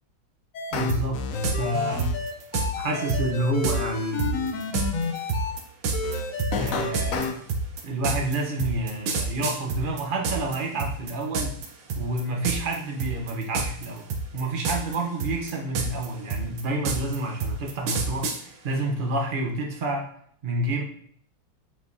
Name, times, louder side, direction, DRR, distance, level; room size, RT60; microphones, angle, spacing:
sound 1, 0.5-5.5 5.9-7.3, left 4 dB, 75° left, 0.7 m, -30 dB
voice 1, 0.7-1.2 1.6-2.1 2.8-4.6 6.5-7.4 7.8-11.6 11.9-14.0 14.3-20.1 20.4-20.8, right 2 dB, 60° right, 0 dB, 0.5 m, -29 dB
sound 2, 0.9-1.0 1.4-1.6 2.0-2.7 3.1-3.2 3.6-3.8 4.2-10.6 10.8-11.7 11.9-12.2 12.5-12.8 13.0-13.9 14.1-15.0 15.2-18.4, right 4 dB, 85° right, 1.7 m, -27 dB
7.7 x 4.9 x 2.7 m, 0.64 s
omnidirectional pair, 2.2 m